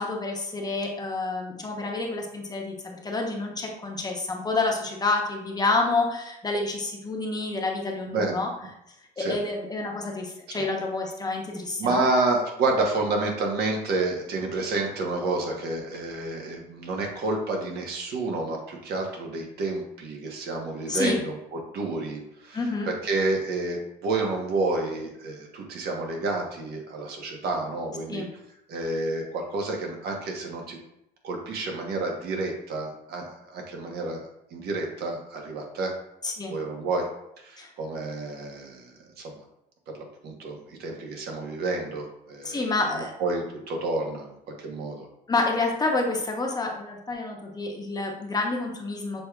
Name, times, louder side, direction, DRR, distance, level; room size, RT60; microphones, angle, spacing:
voice 1, 0.0-8.5 9.2-12.0 20.9-21.2 22.5-22.9 28.1-28.3 36.2-36.5 37.6-37.7 42.4-43.1 45.3-49.2, left 3 dB, 25° left, 0 dB, 0.9 m, -28 dB
voice 2, 11.8-21.4 21.7-22.6 22.8-28.2 28.7-30.8 31.2-35.9 36.5-37.1 37.4-39.4 39.9-42.6 42.9-44.3 44.6-45.1, right 2 dB, 70° right, 1 dB, 1.1 m, -29 dB
6.7 x 3.3 x 2.3 m, 0.81 s
cardioid pair, 110°, 17 cm